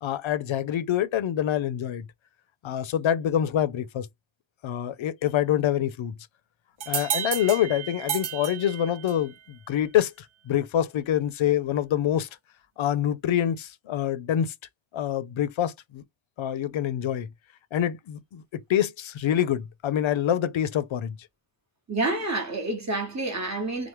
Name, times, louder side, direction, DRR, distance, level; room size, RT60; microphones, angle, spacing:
voice 1, 0.0-2.1 2.6-4.1 4.6-6.1 6.9-10.1 10.5-12.3 12.8-14.5 14.9-16.0 16.4-17.3 17.7-18.4 18.7-21.2, left 10 dB, 80° left, 0.5 m, -26 dB
sound 1, 6.8-9.4, right 9 dB, 85° right, 0.7 m, -32 dB
voice 2, 21.9-23.9, right 2 dB, 35° right, 1.1 m, -28 dB
3.0 x 2.1 x 3.1 m
wide cardioid pair, 85°, 47 cm